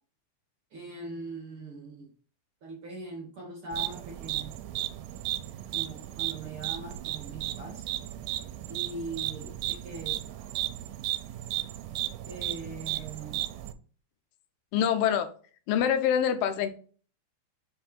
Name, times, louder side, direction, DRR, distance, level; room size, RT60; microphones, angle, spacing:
voice 1, 0.7-2.1 2.6-4.6 5.7-7.9 8.7-10.2 12.3-13.5, right 2 dB, 50° right, 0 dB, 1.8 m, -41 dB
sound 1, 3.7-13.7, right 14 dB, 85° right, 2.4 m, -35 dB
voice 2, 14.7-15.3 15.7-16.7, left 9 dB, 90° left, 8 dB, 2.8 m, -25 dB
5.9 x 4.5 x 5.2 m, 0.41 s
omnidirectional pair, 4.3 m